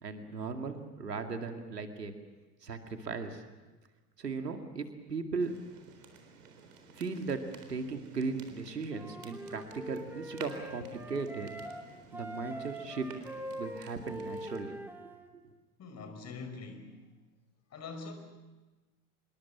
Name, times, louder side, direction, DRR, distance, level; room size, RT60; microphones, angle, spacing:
voice 1, 0.0-2.1 2.6-3.4 4.2-5.5 6.9-7.4 7.7-11.5 12.1-13.1 13.6-14.8 15.3-15.5, right 4 dB, 85° right, 6 dB, 2.3 m, -37 dB
sound 1, 5.4-14.6, right 5 dB, 70° right, 4.0 m, -53 dB
Wind instrument woodwind instrument, 8.9-11.8 12.1-15.3, equal, 5° right, 2.4 m, -43 dB
voice 2, 15.8-17.0 17.7-18.1, left 4 dB, 35° left, 7 dB, 5.5 m, -43 dB
26.5 x 22.0 x 7.3 m, 1.2 s
figure-of-eight pair, 80°, 47 cm